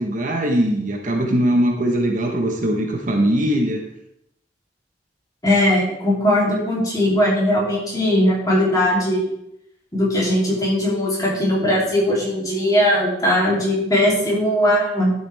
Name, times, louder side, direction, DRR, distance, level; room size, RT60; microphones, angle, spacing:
voice 1, 0.0-3.8, right 1 dB, 50° right, 1 dB, 1.4 m, -20 dB
voice 2, 5.4-9.2 9.9-15.1, left 1 dB, 20° left, -5 dB, 3.3 m, -19 dB
12.0 x 7.1 x 3.5 m, 0.81 s
head